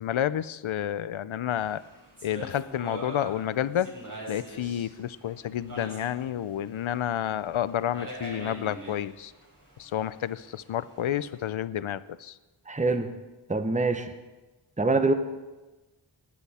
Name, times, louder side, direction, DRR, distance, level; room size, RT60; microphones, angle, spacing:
voice 1, 0.0-1.8 2.2-3.9 4.3-9.3 9.8-12.4, left 10 dB, 75° left, 17 dB, 0.5 m, -30 dB
sound 1, 1.6-11.5, right 1 dB, 40° right, 3.8 m, -44 dB
voice 2, 12.7-13.1 13.5-14.1 14.8-15.1, right 3 dB, 15° right, 8 dB, 0.9 m, -24 dB
16.5 x 10.0 x 4.2 m, 1.2 s
wide cardioid pair, 60°, 48 cm